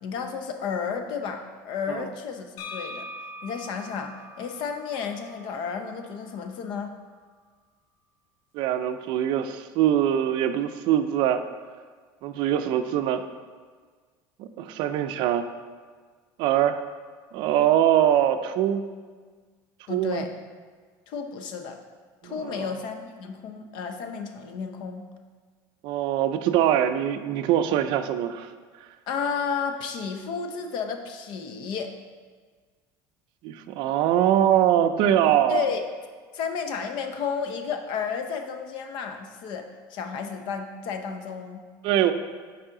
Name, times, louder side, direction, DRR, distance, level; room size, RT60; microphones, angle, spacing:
voice 1, 0.0-3.1 3.4-6.9 19.9-20.3 21.1-21.8 22.2-25.1 29.1-31.9 35.5-35.9 36.3-41.7, left 6 dB, 55° left, 6 dB, 0.7 m, -32 dB
sound 1, 2.6-6.4, left 1 dB, 75° left, 1.0 m, -42 dB
voice 2, 8.5-11.4 12.2-13.2 14.4-15.5 16.4-16.8 17.3-18.8 19.9-20.2 22.2-22.8 25.8-28.5 33.4-35.7 41.8-42.1, right 10 dB, 55° right, 9 dB, 0.4 m, -23 dB
7.2 x 4.8 x 3.8 m, 1.5 s
cardioid pair, 145°, 10 cm